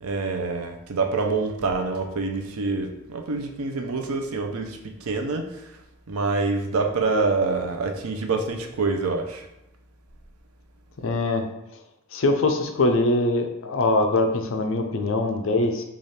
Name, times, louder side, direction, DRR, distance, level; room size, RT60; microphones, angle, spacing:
voice 1, 0.0-5.7 6.1-9.5, right 3 dB, 80° right, 4 dB, 0.5 m, -26 dB
voice 2, 11.0-11.4 12.1-15.8, left 2 dB, 60° left, 5 dB, 0.4 m, -22 dB
3.3 x 2.4 x 4.1 m, 0.88 s
head